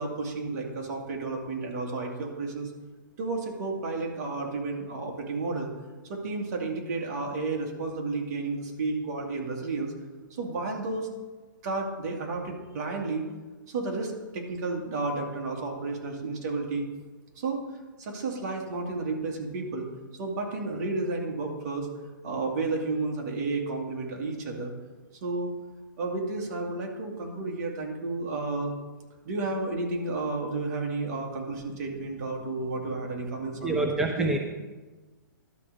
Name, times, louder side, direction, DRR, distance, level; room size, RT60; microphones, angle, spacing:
voice 1, 0.0-2.7 3.2-5.7 6.0-9.9 10.3-11.1 11.6-13.3 13.7-16.8 17.4-17.6 18.0-21.9 22.2-24.7 25.2-25.5 26.0-28.7 29.3-33.9 34.2-34.4, right 3 dB, 50° right, 1 dB, 2.2 m, -32 dB
voice 2, 33.6-34.4, right 2 dB, 5° right, 2 dB, 0.7 m, -26 dB
12.0 x 4.9 x 6.7 m, 1.2 s
hypercardioid pair, 130°, 11 cm